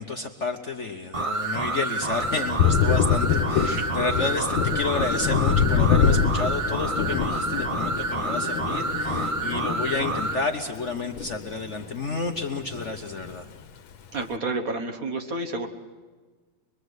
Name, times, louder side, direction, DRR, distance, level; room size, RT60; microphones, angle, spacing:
voice 1, 0.0-13.5, left 3 dB, 45° left, 4 dB, 1.1 m, -30 dB
sound 1, 1.1-10.4, right 3 dB, 30° right, 0.5 m, -29 dB
Thunder, 2.1-11.9 12.2-13.3, left 7 dB, 80° left, 1.8 m, -25 dB
voice 2, 14.1-15.7, right 2 dB, 45° right, 6 dB, 1.6 m, -30 dB
24.0 x 22.0 x 8.1 m, 1.4 s
omnidirectional pair, 2.2 m